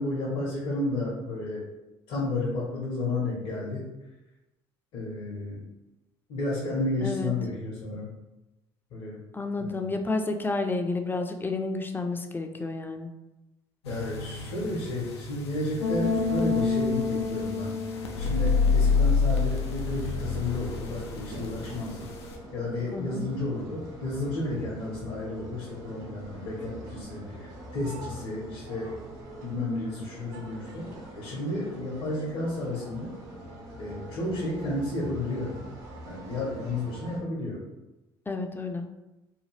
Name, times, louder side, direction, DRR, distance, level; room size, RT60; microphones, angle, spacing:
voice 1, 0.0-1.6 2.1-3.8 4.9-5.6 6.3-8.1 8.9-9.2 9.6-9.8 13.9-17.7 18.2-22.1 22.5-28.9 29.4-30.9 31.1-33.1 33.8-35.5 36.0-37.6, left 2 dB, 65° left, -5 dB, 0.8 m, -32 dB
voice 2, 9.3-13.1 22.9-23.2 38.3-38.8, left 3 dB, 15° left, 5 dB, 0.4 m, -30 dB
sound 1, 13.8-22.4, left 4 dB, 85° left, 0.4 m, -27 dB
sound 2, 18.8-37.2, right 1 dB, 70° right, 1.1 m, -44 dB
2.8 x 2.3 x 3.1 m, 0.99 s
hypercardioid pair, 55°, 13 cm